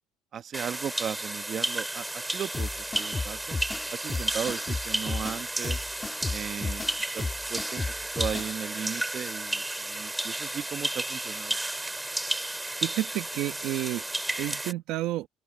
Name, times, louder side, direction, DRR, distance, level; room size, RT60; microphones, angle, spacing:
voice 1, 0.3-2.7 3.0-3.6 3.9-5.8 6.3-6.9 7.1-7.8 8.2-11.6, right 8 dB, 45° right, 1.3 m, -36 dB
sound 1, 0.5-14.7, right 1 dB, 10° right, 3.9 m, -33 dB
sound 2, 2.5-8.5, left 3 dB, 20° left, 3.0 m, -34 dB
voice 2, 12.8-14.0 14.4-15.3, right 16 dB, 70° right, 1.5 m, -30 dB
open air
supercardioid pair, 95°, 0 cm